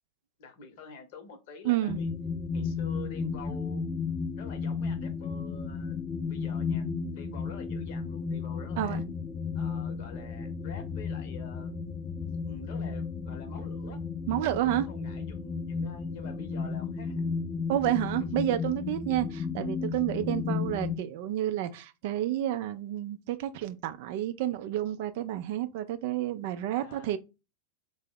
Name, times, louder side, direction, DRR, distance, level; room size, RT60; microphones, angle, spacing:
voice 1, 0.4-2.1 2.5-3.8 4.4-6.0 6.2-9.0 9.5-11.8 12.4-14.0 14.7-17.4 18.2-18.4 24.4-24.5 26.7-27.1, left 4 dB, 50° left, 0.8 m, -47 dB
voice 2, 1.6-2.0 8.8-9.0 14.3-14.9 17.7-27.2, right 13 dB, 50° right, 0.3 m, -30 dB
sound 1, 1.9-21.0, left 5 dB, 20° left, 0.5 m, -34 dB
3.6 x 2.0 x 3.4 m
figure-of-eight pair, 90°, 0 cm